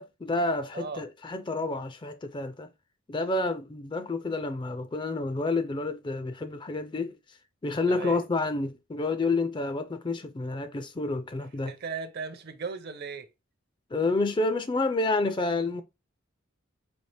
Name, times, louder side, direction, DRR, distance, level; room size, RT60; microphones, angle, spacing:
voice 1, 0.0-2.7 3.1-7.2 7.6-11.7 13.9-15.8, left 3 dB, 20° left, 0.4 m, -29 dB
voice 2, 0.7-1.0 7.9-8.2 11.6-13.3, right 5 dB, 50° right, 0.6 m, -37 dB
4.3 x 2.8 x 3.2 m
head